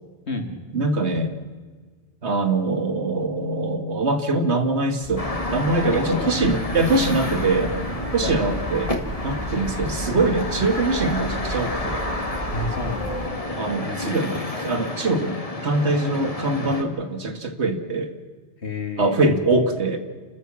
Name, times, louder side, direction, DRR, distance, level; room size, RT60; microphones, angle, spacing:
voice 1, 0.7-1.3 2.2-7.7 8.1-8.9 9.2-12.0 13.6-18.1 19.0-20.0, right 2 dB, 70° right, 8 dB, 2.1 m, -23 dB
sound 1, 5.0-13.3, right 1 dB, 20° right, 1.7 m, -34 dB
sound 2, 5.2-16.8, left 2 dB, 30° left, 2.2 m, -30 dB
voice 2, 5.9-6.5 7.6-7.9 8.2-8.5 12.5-13.2 13.8-14.1 18.6-19.4, left 2 dB, 65° left, 5 dB, 2.6 m, -31 dB
29.5 x 14.0 x 7.5 m, 1.5 s
omnidirectional pair, 1.2 m